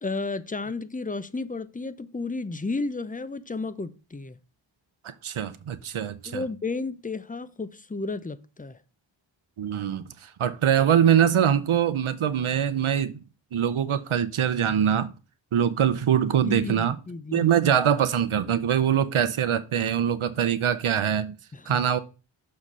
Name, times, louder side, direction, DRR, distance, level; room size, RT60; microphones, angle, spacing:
voice 1, 0.0-4.4 6.2-8.8 16.4-17.5 21.5-21.8, left 3 dB, 15° left, 0.6 m, -32 dB
voice 2, 5.0-6.4 9.6-13.1 13.5-15.1 15.5-17.0 17.3-21.3 21.7-22.0, right 9 dB, 85° right, 0.7 m, -23 dB
6.5 x 4.1 x 6.0 m
wide cardioid pair, 45°, 48 cm